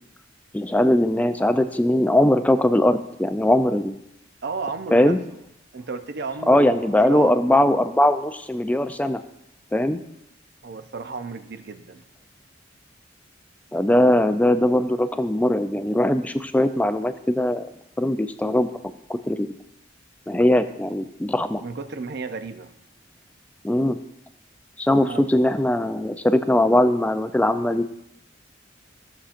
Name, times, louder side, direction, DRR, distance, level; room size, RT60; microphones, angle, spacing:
voice 1, 0.5-4.0 4.9-5.2 6.5-9.2 9.7-10.0 13.7-17.7 18.0-18.7 19.1-19.5 20.3-21.6 23.6-24.0 24.8-27.9, left 1 dB, 10° left, 10 dB, 0.3 m, -20 dB
voice 2, 4.4-5.2 5.7-7.6 10.6-12.0 21.6-22.7 25.0-25.4, right 4 dB, 55° right, 9 dB, 0.5 m, -33 dB
14.0 x 7.0 x 2.5 m, 0.81 s
head